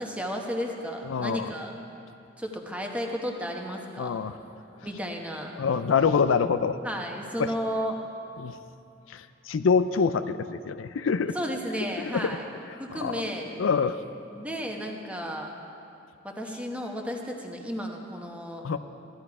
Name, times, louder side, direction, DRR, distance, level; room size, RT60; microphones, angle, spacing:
voice 1, 0.0-1.8 2.4-4.2 4.8-5.5 6.8-8.0 11.3-12.4 12.8-13.5 14.3-15.5 16.2-18.6, equal, 5° right, 1 dB, 1.1 m, -33 dB
voice 2, 1.0-1.5 4.0-4.3 5.6-6.8 7.4-7.5 8.4-8.6 9.1-11.4 12.1-12.4 13.0-13.2 13.6-14.0 18.6-18.8, left 5 dB, 80° left, 11 dB, 0.4 m, -25 dB
14.5 x 12.0 x 4.8 m, 2.6 s
head